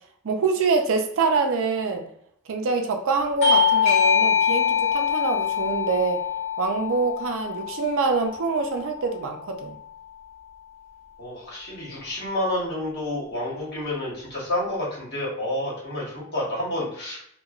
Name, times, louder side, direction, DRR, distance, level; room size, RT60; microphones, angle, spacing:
voice 1, 0.2-2.0 2.5-6.2 6.6-9.8, right 4 dB, 60° right, 4 dB, 0.4 m, -25 dB
Bell / Doorbell, 3.4-8.6, left 6 dB, 30° left, 0.9 m, -23 dB
voice 2, 11.2-17.3, left 1 dB, 50° left, -5 dB, 1.2 m, -29 dB
3.0 x 2.2 x 2.3 m, 0.69 s
head